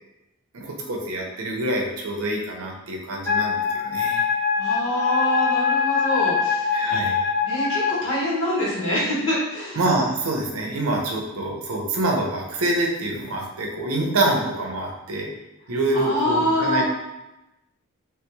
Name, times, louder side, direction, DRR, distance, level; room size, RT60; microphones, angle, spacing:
voice 1, 0.5-4.2 6.7-7.2 9.8-15.3 15.7-16.8, right 2 dB, 75° right, 0 dB, 0.6 m, -26 dB
Wind instrument woodwind instrument, 3.2-8.0, left 6 dB, 10° left, 0.6 m, -23 dB
voice 2, 4.6-6.8 7.4-9.8 15.9-16.8, left 1 dB, 65° left, -7 dB, 1.2 m, -25 dB
3.2 x 3.0 x 2.2 m, 0.97 s
head